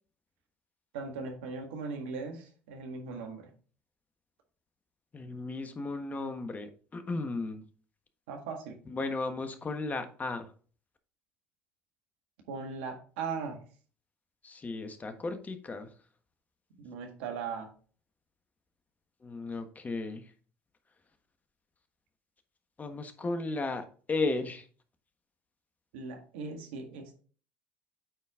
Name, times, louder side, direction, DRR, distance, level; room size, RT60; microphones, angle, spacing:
voice 1, 0.9-3.5 8.3-8.8 12.5-13.6 16.8-17.7 25.9-27.2, right 5 dB, 80° right, 1.8 m, -39 dB
voice 2, 5.1-7.6 8.9-10.5 14.4-15.9 19.2-20.3 22.8-24.7, left 3 dB, 30° left, 1.4 m, -35 dB
9.0 x 4.5 x 3.7 m
hypercardioid pair, 70°, 6 cm